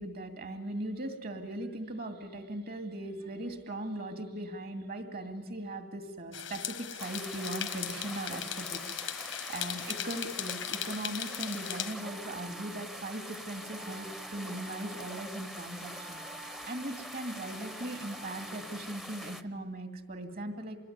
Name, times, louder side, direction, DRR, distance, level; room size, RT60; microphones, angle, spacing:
voice 1, 0.0-8.8 9.2-16.2 16.6-20.8, right 1 dB, 55° right, 6 dB, 2.4 m, -39 dB
sound 1, 6.3-11.9, left 11 dB, 85° left, 1.3 m, -38 dB
sound 2, 7.0-19.4, equal, ahead, 0.8 m, -44 dB
Wind instrument woodwind instrument, 12.0-19.5, right 3 dB, 30° right, 1.2 m, -52 dB
26.5 x 21.0 x 9.6 m, 1.1 s
head